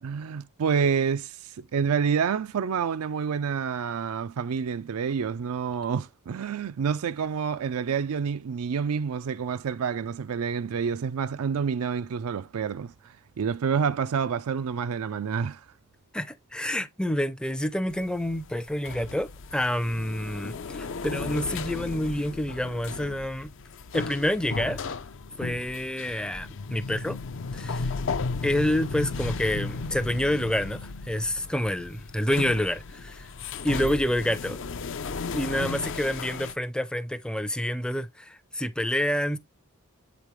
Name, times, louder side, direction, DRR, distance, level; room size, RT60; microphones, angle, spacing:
voice 1, 0.0-15.7, right 6 dB, 80° right, 0.4 m, -28 dB
voice 2, 16.1-23.5 23.9-24.8 25.4-27.2 27.5-27.9 28.4-33.3 33.6-34.6 35.3-39.4, left 1 dB, 5° left, 0.5 m, -28 dB
sound 1, 17.9-36.5, left 4 dB, 55° left, 0.5 m, -35 dB
8.1 x 5.1 x 3.1 m
head